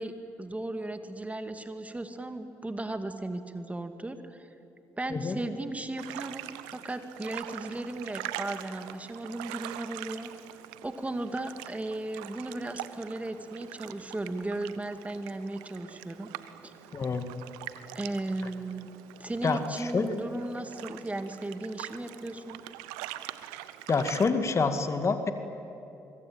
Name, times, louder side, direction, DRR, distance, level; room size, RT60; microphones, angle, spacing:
voice 1, 0.0-4.5 5.0-16.3 16.6-16.7 17.9-18.9 19.2-22.6, right 2 dB, 20° right, 8 dB, 2.3 m, -36 dB
sound 1, 6.0-24.3, right 15 dB, 80° right, 0.8 m, -43 dB
voice 2, 16.9-17.3 19.4-20.2 23.9-25.3, left 4 dB, 40° left, 8 dB, 2.2 m, -27 dB
25.0 x 23.5 x 8.9 m, 2.9 s
hypercardioid pair, 45°, 7 cm